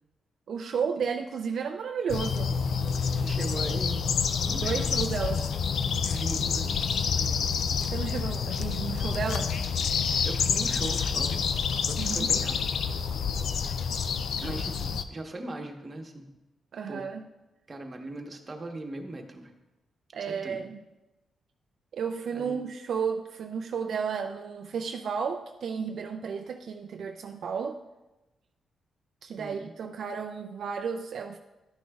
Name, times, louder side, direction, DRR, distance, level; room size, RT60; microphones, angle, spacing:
voice 1, 0.5-2.6 4.5-5.4 7.9-9.5 12.0-12.3 14.4-15.0 16.7-17.3 20.1-20.8 21.9-27.8 29.2-31.4, right 6 dB, 70° right, 4 dB, 0.4 m, -33 dB
sound 1, 2.1-15.0, left 6 dB, 75° left, 0.4 m, -28 dB
voice 2, 3.2-4.1 4.4-4.9 6.0-7.7 10.2-11.4 11.8-12.6 14.4-16.3 16.9-17.0 17.7-19.5 20.3-20.6 22.3-22.6 29.4-29.7, right 2 dB, 35° right, 3 dB, 1.1 m, -39 dB
12.0 x 6.2 x 2.3 m, 1.0 s
cardioid pair, 80°, 0 cm